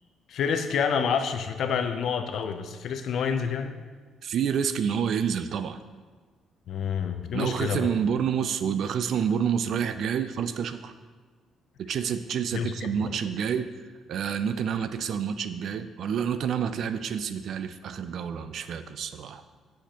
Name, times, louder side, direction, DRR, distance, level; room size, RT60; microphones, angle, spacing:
voice 1, 0.3-3.8 6.7-7.9 12.5-13.1, left 6 dB, 60° left, 7 dB, 0.5 m, -28 dB
voice 2, 4.2-5.8 7.3-10.9 11.8-13.7 14.1-19.4, right 7 dB, 55° right, 11 dB, 0.4 m, -28 dB
8.0 x 6.4 x 2.9 m, 1.4 s
cardioid pair, 150°, 0 cm